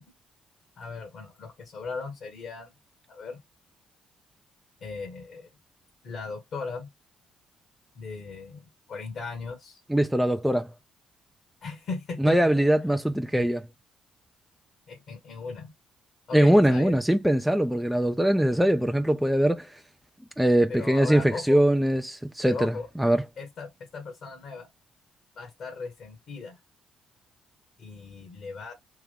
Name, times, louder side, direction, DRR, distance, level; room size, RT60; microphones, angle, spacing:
voice 1, 0.8-2.7 3.1-3.4 4.8-5.5 6.0-6.9 7.9-9.8 11.6-12.4 13.3-13.5 14.9-15.7 16.3-17.0 20.7-21.6 22.4-22.9 23.4-24.7 25.3-26.6 27.8-28.7, left 4 dB, 60° left, 1.5 m, -37 dB
voice 2, 9.9-10.7 12.2-13.6 16.3-19.7 20.4-23.2, right 1 dB, 5° right, 0.6 m, -22 dB
3.6 x 2.9 x 3.5 m
hypercardioid pair, 45°, 0 cm